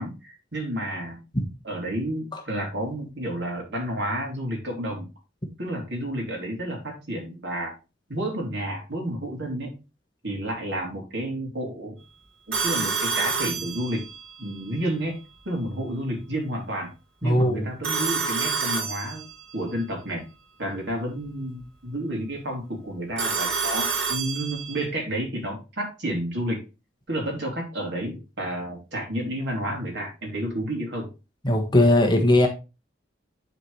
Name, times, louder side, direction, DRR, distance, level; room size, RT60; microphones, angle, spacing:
voice 1, 0.0-1.2 1.6-5.1 5.6-7.7 8.1-9.7 10.2-12.0 12.5-14.1 14.4-15.2 15.5-16.9 17.2-19.3 19.5-20.2 20.6-26.6 27.1-31.1, right 1 dB, 60° right, 0 dB, 3.4 m, -30 dB
Telephone, 12.5-14.3 17.8-19.5 23.2-24.9, right 5 dB, 85° right, 4.0 m, -28 dB
voice 2, 17.2-17.6 31.4-32.5, left 1 dB, 25° left, 3 dB, 1.4 m, -19 dB
10.5 x 5.0 x 3.3 m, 0.28 s
head